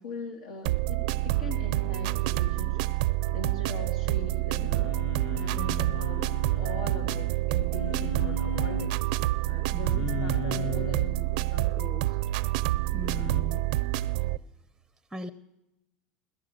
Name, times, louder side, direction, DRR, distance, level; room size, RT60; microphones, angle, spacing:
voice 1, 0.0-2.9 3.3-4.7 5.3-12.2, left 3 dB, 85° left, 3 dB, 1.6 m, -41 dB
sound 1, 0.7-14.4, right 17 dB, 70° right, 0.5 m, -28 dB
Singing, 4.7-7.1 7.7-8.9 9.8-11.1 13.1-13.4, left 6 dB, 50° left, 0.9 m, -37 dB
voice 2, 5.5-6.0 9.7-10.1 12.9-13.6 15.1-15.3, left 1 dB, ahead, 10 dB, 0.6 m, -39 dB
16.5 x 13.5 x 6.5 m, 0.92 s
supercardioid pair, 120°, 4 cm